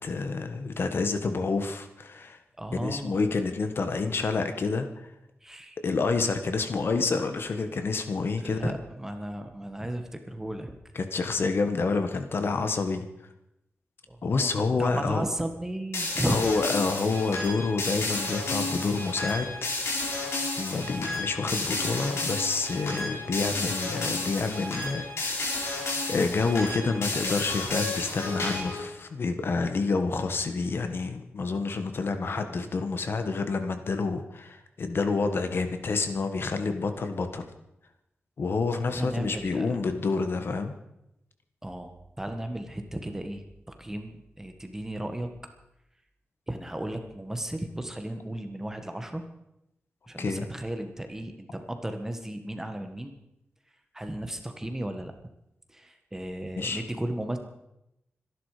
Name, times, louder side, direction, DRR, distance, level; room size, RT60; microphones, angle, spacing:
voice 1, 0.0-2.4 2.8-4.9 5.8-8.8 10.9-13.0 14.2-15.2 16.2-19.5 19.8-20.0 20.6-37.4 38.4-40.7 50.2-50.4 56.6-56.8, left 4 dB, 60° left, 8 dB, 1.5 m, -28 dB
voice 2, 2.6-3.2 5.4-5.8 8.4-10.7 14.1-16.5 38.9-39.7 41.6-41.9 42.2-43.4 43.8-45.3 46.5-49.2 50.1-53.1 53.9-55.1 55.7-57.4, right 1 dB, 10° right, 6 dB, 1.7 m, -34 dB
sound 1, 15.9-28.8, left 2 dB, 90° left, 4.8 m, -32 dB
25.5 x 11.0 x 5.1 m, 0.85 s
wide cardioid pair, 145°, 4 cm